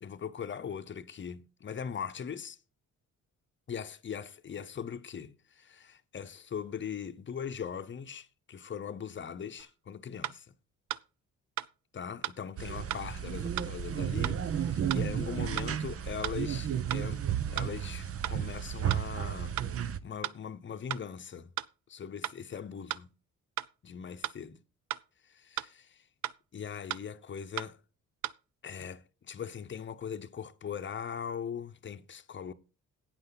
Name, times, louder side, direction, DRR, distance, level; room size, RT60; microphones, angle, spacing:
voice 1, 0.0-2.6 3.7-10.5 11.9-19.6 20.0-21.5 21.9-23.1 23.8-24.6 25.3-26.0 26.5-27.8 28.6-32.5, left 7 dB, 40° left, 0.8 m, -40 dB
sound 1, 9.6-9.7 10.2-10.4 10.9-11.0 11.6-11.7 12.2-12.4 12.9-13.0 13.6-13.7 14.2-14.4 14.9-15.0 15.6-15.7 16.2-16.4 16.9-17.0 17.6-17.7 18.2-18.4 18.9-19.0 19.6-19.7 20.2-20.4 20.9-21.0 21.6-21.7 22.2-22.4 22.9-23.0 23.6-23.7 24.2-24.4 24.9-25.0 25.6-25.7 26.2-26.4 26.9-27.0 27.6-27.7 28.2-28.4, right 12 dB, 70° right, 0.5 m, -35 dB
sound 2, 12.6-20.0, right 9 dB, 50° right, 0.8 m, -33 dB
12.0 x 8.9 x 4.0 m
cardioid pair, 90°, 30 cm